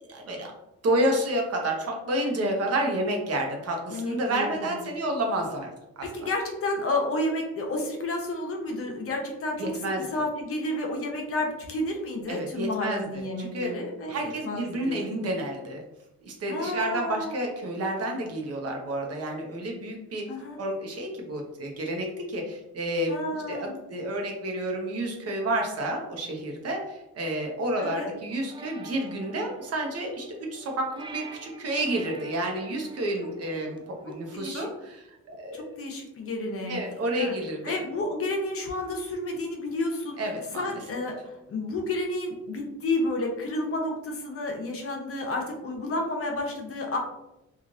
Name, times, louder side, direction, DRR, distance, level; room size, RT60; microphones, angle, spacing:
voice 1, 0.1-0.5 0.8-5.7 6.0-6.1 9.6-10.0 12.3-13.7 14.1-15.8 16.2-20.2 20.6-23.2 23.5-35.7 36.7-37.7 40.2-40.8, right 1 dB, 55° right, 2 dB, 0.8 m, -30 dB
voice 2, 3.9-4.8 6.1-15.0 16.5-17.5 20.3-20.6 23.1-23.8 27.8-28.2 34.1-34.7 35.5-36.8 37.1-37.3 37.6-40.2 40.5-47.0, left 2 dB, 50° left, 2 dB, 0.7 m, -31 dB
sound 1, 28.3-34.4, right 3 dB, 15° right, 0.4 m, -47 dB
3.1 x 2.4 x 2.5 m, 0.91 s
cardioid pair, 90°, 30 cm